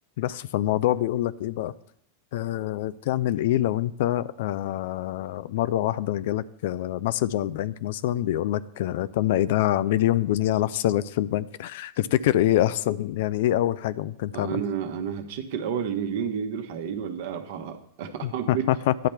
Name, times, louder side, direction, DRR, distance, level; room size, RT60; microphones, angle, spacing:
voice 1, 0.2-1.7 2.3-14.6 18.2-18.9, left 13 dB, 55° left, 15 dB, 0.4 m, -25 dB
voice 2, 14.3-18.7, right 8 dB, 50° right, 7 dB, 1.1 m, -31 dB
10.5 x 4.3 x 6.9 m, 0.67 s
figure-of-eight pair, 90°, 0 cm